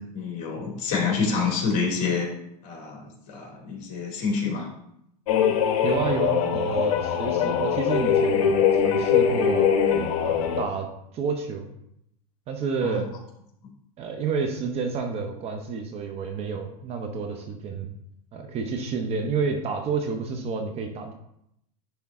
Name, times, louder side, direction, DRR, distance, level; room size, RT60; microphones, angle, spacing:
voice 1, 0.1-2.3 2.6-4.7 12.8-13.0, left 5 dB, 40° left, -2 dB, 2.7 m, -27 dB
sound 1, 5.3-10.6, left 8 dB, 60° left, 1.0 m, -22 dB
voice 2, 5.8-9.7 10.2-10.9 11.1-11.7 12.5-13.1 14.0-17.9 18.3-21.1, right 5 dB, 30° right, 5 dB, 0.8 m, -29 dB
10.0 x 3.5 x 3.5 m, 0.76 s
supercardioid pair, 135°, 20 cm